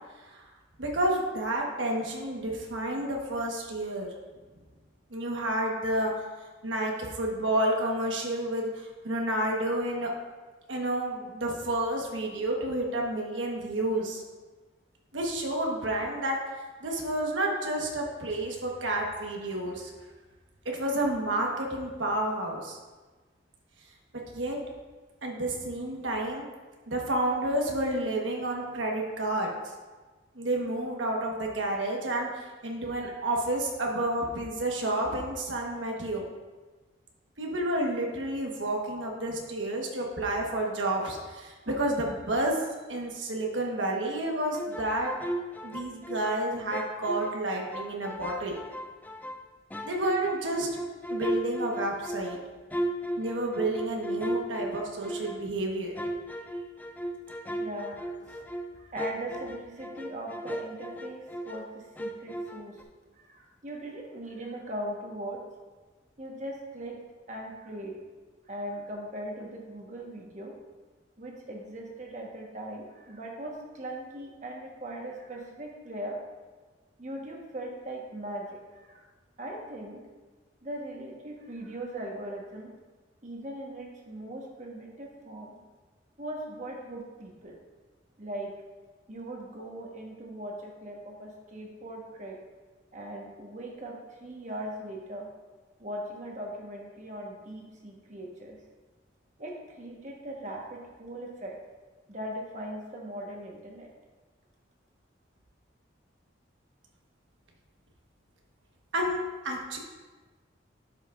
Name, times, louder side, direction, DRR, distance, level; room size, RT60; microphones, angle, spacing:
voice 1, 0.8-4.1 5.1-6.1 6.6-10.1 10.7-14.2 15.1-16.4 16.8-19.9 20.6-22.8 24.3-24.6 25.2-26.4 26.9-29.5 30.3-36.3 37.4-42.6 42.9-45.1 45.6-48.6 49.8-50.7 51.1-52.4 53.2-56.0 108.9-109.8, right 1 dB, 85° right, 0 dB, 1.3 m, -30 dB
sound 1, 44.5-46.4 46.7-49.4 49.7-55.5 56.0-61.7 62.0-62.8, right 1 dB, 10° left, 0.3 m, -36 dB
voice 2, 57.6-58.4 58.7-62.8 63.1-65.4 66.2-67.0 67.3-67.9 68.5-70.5 71.2-76.2 77.0-79.0 79.4-80.0 80.6-82.7 83.2-85.6 86.2-87.6 88.2-88.5 89.1-92.4 92.9-95.3 95.8-98.6 99.4-101.5 102.1-103.9, right 1 dB, 40° right, -1 dB, 1.3 m, -39 dB
11.5 x 5.8 x 2.5 m, 1.3 s
head